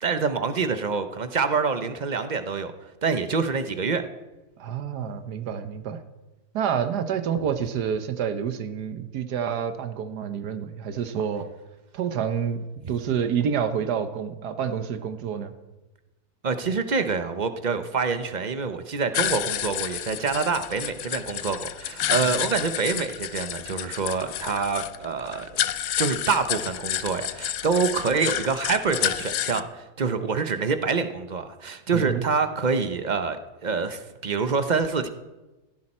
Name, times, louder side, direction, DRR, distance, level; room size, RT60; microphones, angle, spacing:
voice 1, 0.0-2.7 3.0-4.0 12.8-12.9 16.4-25.6 26.0-35.1, right 5 dB, 40° right, 9 dB, 0.6 m, -26 dB
voice 2, 4.6-6.0 6.5-11.5 11.9-15.5 22.1-22.3 31.9-32.2, right 7 dB, 75° right, 10 dB, 1.4 m, -28 dB
sound 1, 19.1-29.6, left 11 dB, 65° left, 0.8 m, -30 dB
16.5 x 15.0 x 4.3 m, 1.1 s
omnidirectional pair, 1.7 m